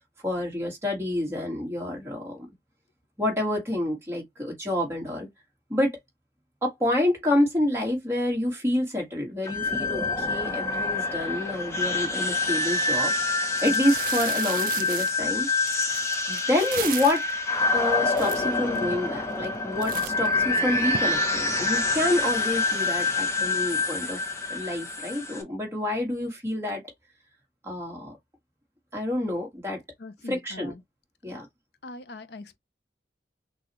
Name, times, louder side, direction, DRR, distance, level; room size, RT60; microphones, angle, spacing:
voice 1, 0.2-2.5 3.2-5.3 5.7-6.0 6.6-13.1 13.6-15.5 16.3-17.3 17.7-26.8 27.6-28.1 28.9-29.8 30.2-30.7 31.2-31.5, left 1 dB, 15° right, 1.6 m, -28 dB
sound 1, 9.4-25.4, left 3 dB, 15° left, 0.8 m, -27 dB
sound 2, 13.0-13.1 13.6-17.3 17.9-18.0 18.1-18.8 19.3-19.6 19.8-21.0, right 10 dB, 50° right, 0.4 m, -35 dB
voice 2, 30.0-30.8 31.2-31.4 31.8-32.6, left 2 dB, 65° left, 0.6 m, -42 dB
6.1 x 2.4 x 3.0 m
head